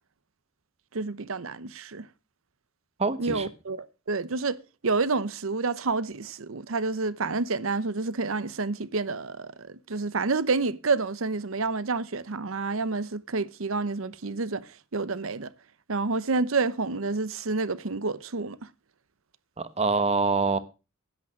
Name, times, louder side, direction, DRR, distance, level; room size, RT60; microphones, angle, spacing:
voice 1, 0.9-2.1 3.2-4.6 4.8-15.5 15.9-18.6, right 3 dB, 70° right, 0.8 m, -29 dB
voice 2, 3.0-3.5 19.6-20.6, right 4 dB, 30° right, 1.1 m, -25 dB
10.5 x 8.7 x 6.2 m
head